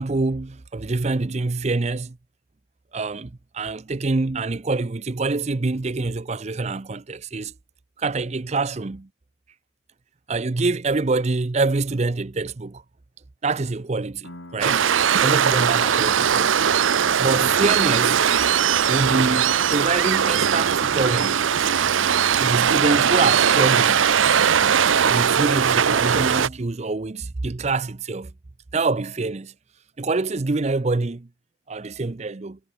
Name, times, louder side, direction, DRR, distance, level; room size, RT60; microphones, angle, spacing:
voice 1, 0.0-2.2 2.9-7.5 8.0-9.1 10.3-12.8 13.4-14.8 15.2-16.8 17.2-18.2 18.9-21.4 22.4-24.1 25.0-28.3 28.7-29.5 30.0-31.3 31.7-32.6, right 3 dB, 35° right, 0.6 m, -25 dB
Piano, 14.2-21.6, left 1 dB, 75° left, 4.2 m, -52 dB
Waves surf, 14.6-26.5, right 8 dB, 85° right, 0.6 m, -19 dB
head